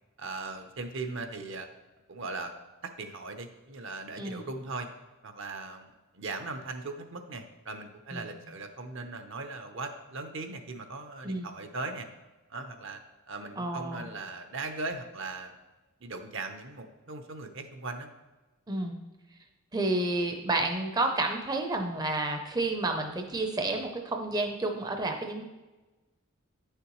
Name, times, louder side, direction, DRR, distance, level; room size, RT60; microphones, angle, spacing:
voice 1, 0.2-1.7 2.1-2.5 2.8-4.9 5.2-12.1 12.5-13.0 13.3-15.6 16.0-18.1, right 3 dB, 60° right, 6 dB, 0.7 m, -39 dB
voice 2, 13.6-14.1 18.7-19.0 19.7-25.4, right 2 dB, 20° right, 4 dB, 0.6 m, -30 dB
9.4 x 6.7 x 3.1 m, 1.2 s
head